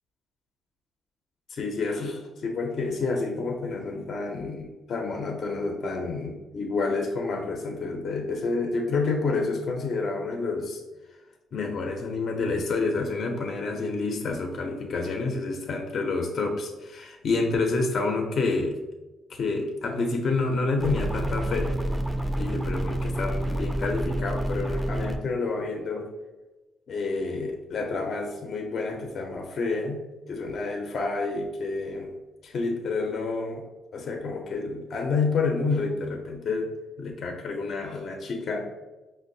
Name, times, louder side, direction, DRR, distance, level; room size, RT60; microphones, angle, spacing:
voice 1, 1.5-10.8 11.5-18.8 19.3-21.8 22.4-26.1 26.9-30.0 30.3-32.1 32.4-33.6 33.9-36.7 37.0-38.7, left 3 dB, 55° left, 3 dB, 0.4 m, -29 dB
sound 1, 20.8-25.2, right 1 dB, 5° right, 0.4 m, -28 dB
5.2 x 2.0 x 2.6 m, 1.1 s
cardioid pair, 90°, 0 cm